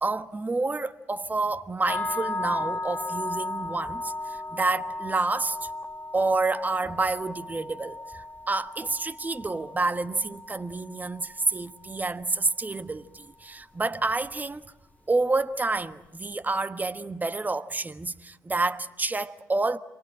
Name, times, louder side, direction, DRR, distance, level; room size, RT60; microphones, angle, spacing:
voice 1, 0.0-5.7 6.1-14.6 15.1-19.8, right 3 dB, 20° right, 1.3 m, -29 dB
sound 1, 1.9-12.0, left 2 dB, 15° left, 1.4 m, -35 dB
29.0 x 23.5 x 7.6 m
hypercardioid pair, 55°, 9 cm